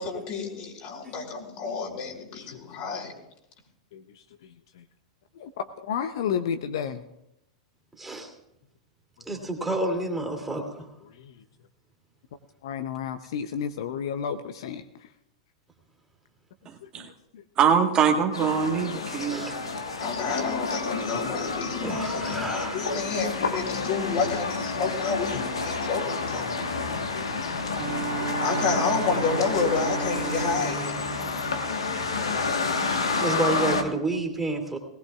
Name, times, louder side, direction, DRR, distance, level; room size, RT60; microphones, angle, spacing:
voice 1, 0.0-3.1 20.0-26.4 28.4-30.9, left 5 dB, 45° left, -1 dB, 3.7 m, -29 dB
voice 2, 5.4-7.0 11.2-11.3 12.6-14.8 17.0-17.4 21.1-21.3 26.3-28.5 31.2-31.3, left 7 dB, 60° left, 9 dB, 0.7 m, -33 dB
voice 3, 8.0-8.3 9.3-10.9 19.3-19.6 21.8-23.0 33.2-34.8, right 2 dB, 5° right, 2 dB, 2.7 m, -29 dB
voice 4, 16.7-17.1 17.6-19.5 32.8-33.1, right 7 dB, 30° right, 3 dB, 1.5 m, -24 dB
sound 1, 18.3-33.8, left 4 dB, 80° left, 1.4 m, -30 dB
Bowed string instrument, 27.7-32.4, right 5 dB, 50° right, 1.1 m, -35 dB
19.5 x 18.0 x 2.4 m, 0.86 s
figure-of-eight pair, 95°, 3 cm